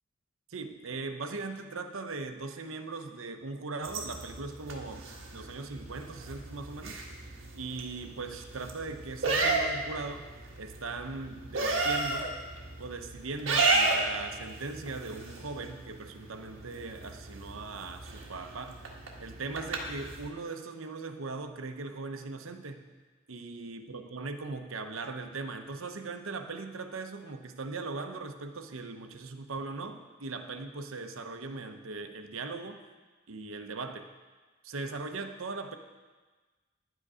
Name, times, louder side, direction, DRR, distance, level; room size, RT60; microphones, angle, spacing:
voice 1, 0.5-5.1 5.3-7.0 7.6-10.3 10.6-12.3 12.8-18.8 19.2-22.8 23.3-32.8 33.3-34.1 34.6-35.8, right 3 dB, 85° right, 7 dB, 0.9 m, -39 dB
sound 1, 3.8-20.3, right 3 dB, 65° right, 1.7 m, -34 dB
11.0 x 9.4 x 5.0 m, 1.3 s
head